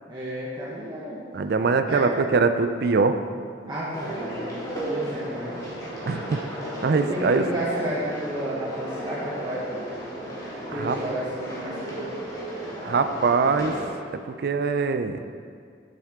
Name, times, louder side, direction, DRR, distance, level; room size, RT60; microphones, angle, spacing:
voice 1, 0.1-1.2 1.8-2.0 3.7-5.8 7.1-9.6 10.7-12.1, right 1 dB, 25° right, -8 dB, 1.2 m, -32 dB
voice 2, 1.3-3.2 6.1-6.4 6.8-7.4 10.8-11.0 12.8-13.7 14.3-15.2, right 4 dB, 55° right, 9 dB, 0.4 m, -22 dB
sound 1, 3.9-13.8, right 1 dB, 20° left, 2.2 m, -34 dB
9.3 x 8.0 x 3.6 m, 2.1 s
head